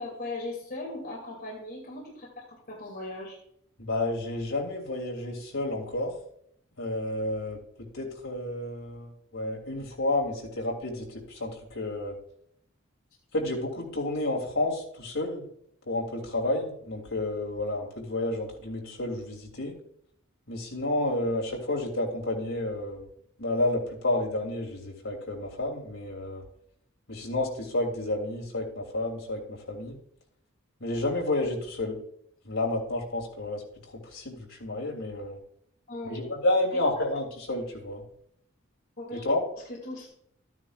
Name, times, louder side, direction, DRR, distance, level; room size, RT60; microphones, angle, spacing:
voice 1, 0.0-3.4 35.9-36.3 36.8-37.1 39.0-39.3 39.7-40.1, left 2 dB, 50° left, -3 dB, 2.6 m, -38 dB
voice 2, 3.8-6.1 6.8-7.6 7.9-12.2 13.3-15.5 15.9-19.8 20.5-23.1 23.4-26.4 27.1-30.0 30.8-32.0 32.4-33.6 34.0-35.4 36.0-38.0 39.1-39.4, left 2 dB, 70° left, -1 dB, 3.0 m, -30 dB
13.0 x 9.6 x 2.5 m, 0.69 s
head